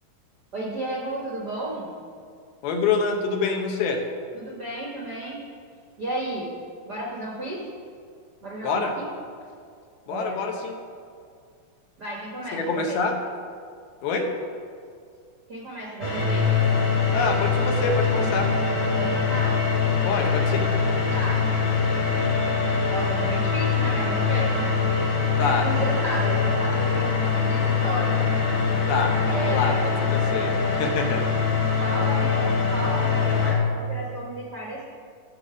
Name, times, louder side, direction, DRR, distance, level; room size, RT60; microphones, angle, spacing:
voice 1, 0.5-1.9 4.3-5.4 6.0-6.5 6.9-7.6 8.4-9.1 10.0-10.4 12.0-13.0 15.5-16.5 19.0-19.6 21.1-21.4 22.9-24.7 25.4-28.2 29.3-29.9 31.7-34.9, right 1 dB, 85° right, -4 dB, 0.9 m, -33 dB
voice 2, 2.6-4.0 8.6-8.9 10.1-10.8 12.5-13.1 14.0-14.3 17.1-18.5 20.0-20.7 25.4-25.7 28.9-31.2, left 4 dB, 75° left, 3 dB, 2.8 m, -26 dB
sound 1, 16.0-33.5, left 5 dB, 50° left, 1.0 m, -23 dB
15.0 x 6.8 x 5.0 m, 2.2 s
omnidirectional pair, 4.6 m